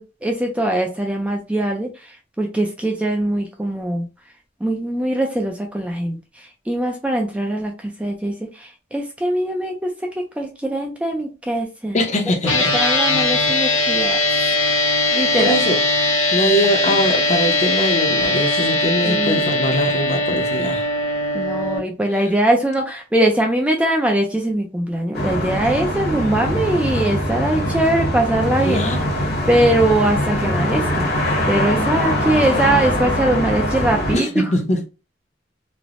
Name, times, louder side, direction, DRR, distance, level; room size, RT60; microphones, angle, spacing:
voice 1, 0.0-4.1 4.6-12.0 12.5-14.2 15.1-15.6 16.9-17.0 19.0-19.5 21.3-28.8 29.5-31.1 31.5-34.4, right 1 dB, 5° right, 0.3 m, -21 dB
voice 2, 11.9-12.7 15.4-15.8 16.3-20.9 28.6-29.1 34.1-34.9, left 1 dB, 40° left, 0.6 m, -22 dB
sound 1, 12.5-21.8, left 2 dB, 90° left, 1.1 m, -20 dB
sound 2, 25.1-34.2, equal, 60° left, 1.0 m, -22 dB
3.2 x 2.0 x 2.4 m
head